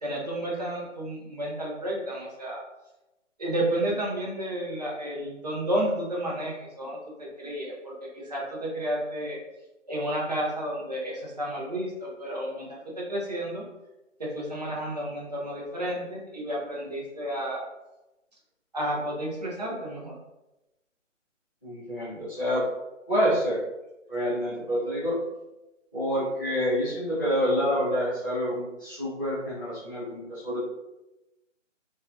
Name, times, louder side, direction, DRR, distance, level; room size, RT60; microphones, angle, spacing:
voice 1, 0.0-2.6 3.4-9.4 9.8-13.6 14.2-17.6 18.7-20.1, right 1 dB, 35° right, -4 dB, 0.5 m, -31 dB
voice 2, 21.6-22.6 23.1-23.6 24.1-25.2 25.9-30.7, equal, 15° left, -13 dB, 0.5 m, -27 dB
2.6 x 2.2 x 2.3 m, 0.99 s
figure-of-eight pair, 160°, 38 cm